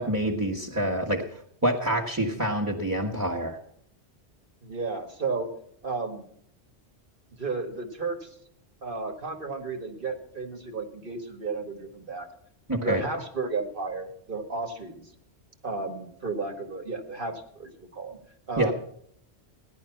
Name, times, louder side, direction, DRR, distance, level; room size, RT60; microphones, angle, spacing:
voice 1, 0.0-3.6 12.7-13.0 18.6-18.7, right 1 dB, 15° right, -2 dB, 1.5 m, -27 dB
voice 2, 4.6-5.5 5.8-6.3 7.3-8.4 8.8-12.3 12.8-15.1 15.6-18.2 18.5-18.7, right 4 dB, 50° right, 5 dB, 2.1 m, -33 dB
16.5 x 11.0 x 5.9 m, 0.66 s
omnidirectional pair, 1.1 m